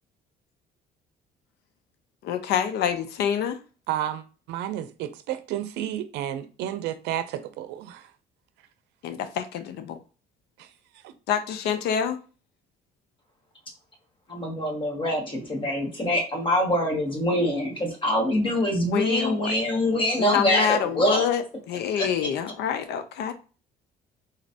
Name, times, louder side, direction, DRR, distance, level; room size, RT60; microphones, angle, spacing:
voice 1, 2.2-3.6 9.0-10.0 11.3-12.2 18.9-19.6 20.2-23.3, left 8 dB, 75° left, 0.6 m, -26 dB
voice 2, 3.9-8.1 10.6-10.7 11.0-11.1, right 11 dB, 85° right, 0.5 m, -31 dB
voice 3, 14.3-21.3 22.0-22.1, equal, 30° left, 1.6 m, -24 dB
4.0 x 3.0 x 2.7 m
cardioid pair, 110°, 17 cm